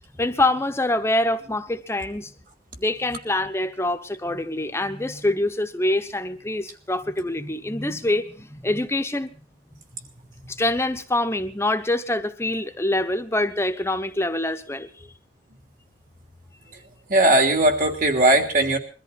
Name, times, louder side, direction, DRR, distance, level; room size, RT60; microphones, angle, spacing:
voice 1, 0.2-2.3 2.8-9.3 10.5-15.1, left 1 dB, 15° left, 9 dB, 1.0 m, -25 dB
voice 2, 17.1-18.8, right 1 dB, 50° right, 4 dB, 3.1 m, -18 dB
22.5 x 13.5 x 4.2 m, 0.38 s
head